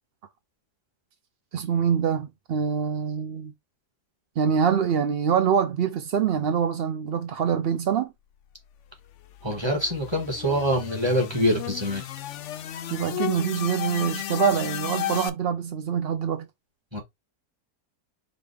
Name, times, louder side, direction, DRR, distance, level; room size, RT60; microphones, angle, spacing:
voice 1, 1.5-3.5 4.4-8.1 12.9-16.5, right 7 dB, 75° right, 0.5 m, -25 dB
sound 1, 8.9-15.3, left 12 dB, 75° left, 0.7 m, -34 dB
voice 2, 9.4-12.1 16.9-17.0, equal, 15° right, 1.8 m, -25 dB
5.1 x 2.8 x 3.4 m
omnidirectional pair, 1.7 m